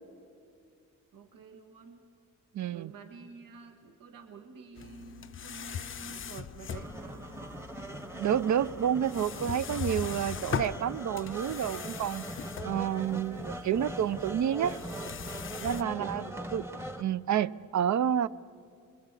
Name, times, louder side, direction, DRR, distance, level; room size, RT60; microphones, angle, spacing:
voice 1, 1.1-2.0 2.7-7.3 15.6-16.4, right 6 dB, 85° right, 4 dB, 1.8 m, -49 dB
voice 2, 2.5-2.9 8.1-12.3 12.6-14.8 15.6-16.2 16.5-16.6 17.0-18.3, right 9 dB, 60° right, 17 dB, 0.5 m, -29 dB
sound 1, 4.8-15.8, left 7 dB, 40° left, 0.6 m, -41 dB
sound 2, 6.7-17.0, right 1 dB, 5° right, 1.0 m, -41 dB
29.0 x 22.0 x 8.3 m, 2.4 s
wide cardioid pair, 170°, 33 cm